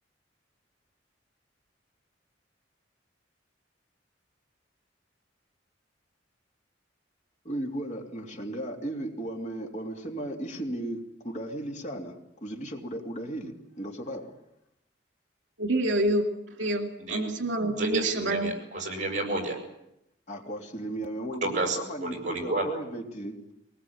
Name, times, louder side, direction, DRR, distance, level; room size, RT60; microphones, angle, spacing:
voice 1, 7.4-14.3 20.3-23.4, right 1 dB, 40° left, 2 dB, 2.8 m, -36 dB
voice 2, 15.6-16.3 16.6-18.5, right 1 dB, 80° right, 4 dB, 2.5 m, -27 dB
voice 3, 17.8-19.6 21.4-22.6, right 2 dB, 40° right, 3 dB, 7.5 m, -30 dB
23.0 x 20.0 x 8.8 m, 0.83 s
head